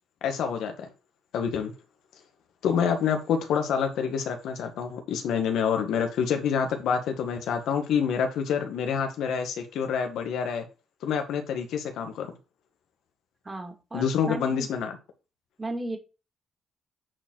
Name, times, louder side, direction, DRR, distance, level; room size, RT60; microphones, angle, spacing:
voice 1, 0.2-0.9 1.3-1.7 2.6-10.7 11.0-12.3 13.9-15.0, left 7 dB, 80° left, 6 dB, 1.8 m, -27 dB
voice 2, 13.4-14.7 15.6-16.0, right 1 dB, 20° right, 4 dB, 2.5 m, -35 dB
8.7 x 4.5 x 4.7 m, 0.30 s
cardioid pair, 90°, 0 cm